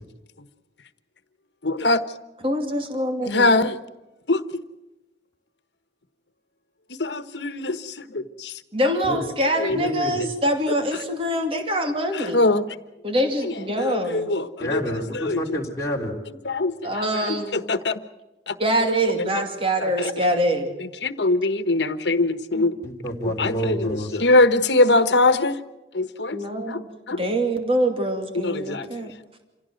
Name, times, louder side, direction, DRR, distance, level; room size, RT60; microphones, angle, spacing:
voice 1, 1.6-2.0 3.2-3.8 4.3-4.4 6.9-8.6 9.6-10.3 12.1-12.6 13.4-13.5 13.8-14.8 15.1-15.6 16.4-18.0 18.5-18.6 19.8-20.1 20.8-22.8 23.4-25.6 25.9-26.4 26.7-26.8 27.1-27.2 28.4-29.0, left 2 dB, 75° left, 12 dB, 1.3 m, -22 dB
voice 2, 2.4-3.5 8.7-12.4 13.0-14.3 16.8-17.7 18.6-20.7 26.3-29.1, equal, 30° right, 4 dB, 2.6 m, -24 dB
voice 3, 9.7-10.2 14.6-16.2 22.8-24.2, equal, 15° left, -3 dB, 3.4 m, -28 dB
27.5 x 17.0 x 7.8 m, 1.1 s
head